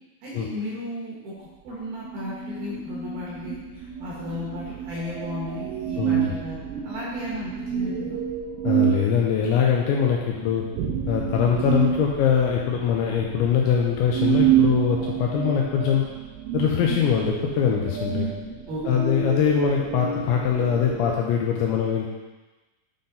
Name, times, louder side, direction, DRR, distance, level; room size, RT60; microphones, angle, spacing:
voice 1, 0.2-8.2 18.7-19.1, left 2 dB, 65° right, -6 dB, 2.6 m, -35 dB
sound 1, 2.0-21.2, right 9 dB, 80° right, 3.2 m, -29 dB
voice 2, 6.0-6.3 8.6-10.6 11.1-16.0 16.5-18.3 18.9-22.1, left 7 dB, 85° left, -2 dB, 2.7 m, -22 dB
10.0 x 3.8 x 3.9 m, 1.2 s
omnidirectional pair, 5.8 m